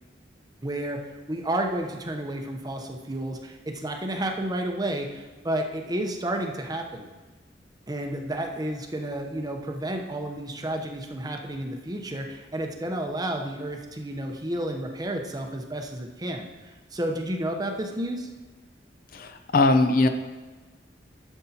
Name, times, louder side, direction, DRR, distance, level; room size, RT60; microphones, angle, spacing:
voice 1, 0.6-7.1 7.9-16.5 16.9-18.3, right 1 dB, 20° right, 3 dB, 0.8 m, -31 dB
voice 2, 19.1-20.1, left 2 dB, 55° left, 8 dB, 0.6 m, -20 dB
11.5 x 7.1 x 2.8 m, 1.3 s
head